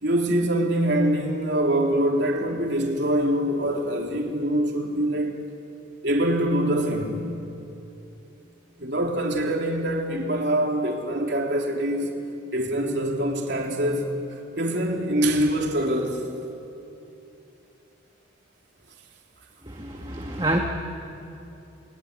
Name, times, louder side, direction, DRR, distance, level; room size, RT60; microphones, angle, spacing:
voice 1, 0.0-5.4 6.0-7.2 8.8-12.1 12.5-14.1 14.6-16.2, right 1 dB, 60° right, 3.6 m, -24 dB
voice 2, 19.7-20.6, right 1 dB, 20° right, 1.6 m, -27 dB
28.0 x 21.0 x 10.0 m
head